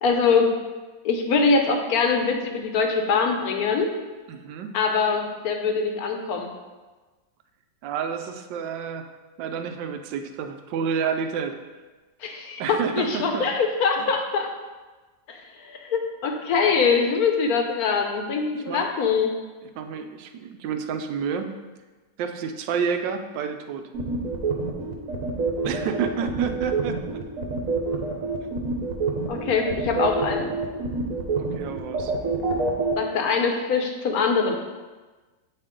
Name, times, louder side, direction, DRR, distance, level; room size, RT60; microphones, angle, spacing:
voice 1, 0.0-0.6 1.0-4.0 4.7-6.5 12.2-14.5 15.3-19.3 29.3-30.5 33.0-34.6, left 5 dB, 65° left, 3 dB, 1.1 m, -23 dB
voice 2, 4.3-4.8 7.8-9.0 9.4-11.6 12.6-13.5 14.0-14.1 18.7-18.9 19.8-21.5 22.2-23.9 25.6-27.2 28.4-28.5 31.3-32.1, right 6 dB, 85° right, 7 dB, 1.3 m, -29 dB
sound 1, 23.9-32.9, right 4 dB, 55° right, 1.2 m, -26 dB
7.8 x 4.5 x 3.7 m, 1.3 s
omnidirectional pair, 1.9 m